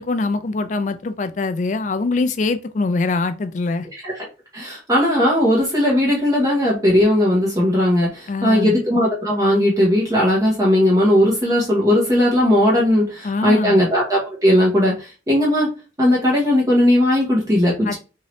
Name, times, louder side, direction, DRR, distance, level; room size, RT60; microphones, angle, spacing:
voice 1, 0.0-3.9 8.3-8.7 13.2-13.8 17.8-18.0, left 3 dB, 45° left, 0.4 m, -23 dB
voice 2, 3.9-4.3 4.5-15.7 16.0-18.0, left 1 dB, 20° right, 0.8 m, -17 dB
3.0 x 2.7 x 3.0 m
head